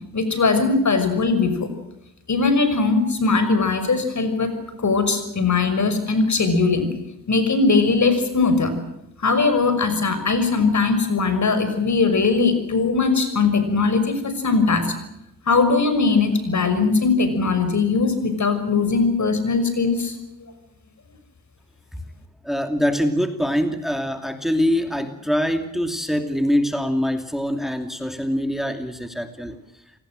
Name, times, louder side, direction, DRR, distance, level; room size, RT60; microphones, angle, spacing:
voice 1, 0.1-1.7 2.3-6.9 7.3-8.7 9.2-14.9 15.5-20.2, left 4 dB, 55° left, 10 dB, 6.0 m, -20 dB
voice 2, 22.4-29.6, equal, ahead, 6 dB, 2.7 m, -24 dB
28.0 x 19.0 x 7.7 m, 0.86 s
cardioid pair, 70°, 35 cm